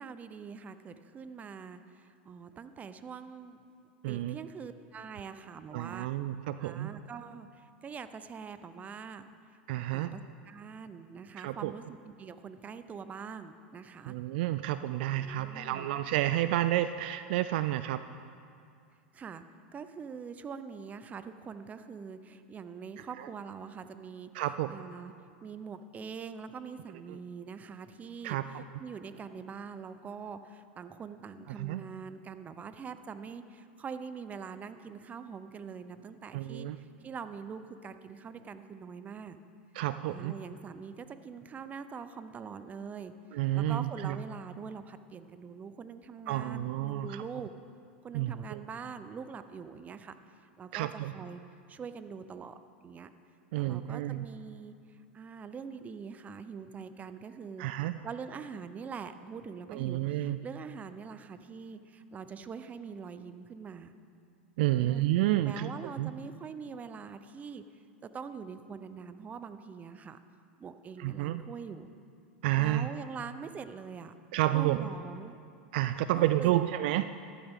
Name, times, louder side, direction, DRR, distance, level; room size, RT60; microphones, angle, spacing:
voice 1, 0.0-1.8 2.3-3.6 4.1-6.1 6.6-7.5 7.8-9.2 9.9-10.2 10.5-14.2 15.1-15.9 19.1-19.4 19.7-24.3 24.7-25.1 25.4-36.7 37.0-39.4 40.1-43.1 43.5-47.5 48.0-50.2 50.6-51.4 51.7-52.6 52.8-53.1 53.6-54.7 55.1-57.6 58.0-63.9 64.7-65.0 65.3-67.6 68.1-70.2 70.6-71.9 72.5-74.1 74.5-75.4 76.1-76.8, right 6 dB, 25° right, 11 dB, 0.7 m, -43 dB
voice 2, 4.0-4.4 5.7-6.9 9.7-10.1 11.4-11.7 14.1-18.0 23.2-23.3 24.3-24.8 27.1-27.2 28.2-28.6 31.6-31.8 36.3-36.8 39.7-40.3 43.3-44.2 46.3-47.2 48.1-48.6 50.7-51.1 53.5-54.3 57.6-58.0 59.7-60.4 64.6-65.7 66.0-66.1 71.0-71.4 72.4-72.9 74.3-74.9 75.7-77.0, right 14 dB, 60° right, 12 dB, 0.3 m, -30 dB
14.5 x 12.5 x 3.7 m, 2.4 s
hypercardioid pair, 95°, 6 cm